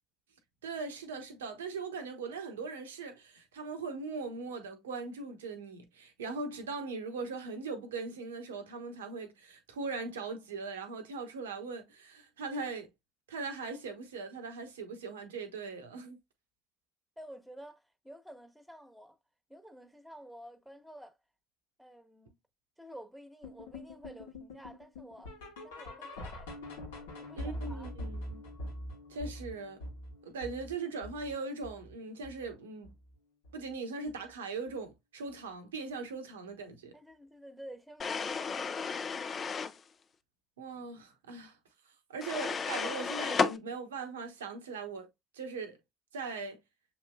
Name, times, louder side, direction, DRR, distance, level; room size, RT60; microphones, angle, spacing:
voice 1, 0.6-12.9 13.3-16.2 27.3-28.4 29.1-29.8 30.2-32.9 33.5-36.9 40.6-41.6 42.1-45.1 45.3-45.8 46.1-46.6, right 4 dB, 85° right, 0.8 m, -40 dB
voice 2, 17.2-19.2 19.5-21.2 21.8-22.3 22.8-25.3 25.6-26.5 27.2-27.9 36.9-38.9, equal, 5° right, 1.2 m, -50 dB
sound 1, 23.4-32.5 32.8-33.1 33.4-33.5 34.1-34.2 34.7-34.8, left 1 dB, 80° left, 1.2 m, -44 dB
sound 2, 38.0-39.8 42.2-43.6, left 5 dB, 40° left, 0.5 m, -33 dB
6.7 x 3.0 x 2.2 m
hypercardioid pair, 60°, 0 cm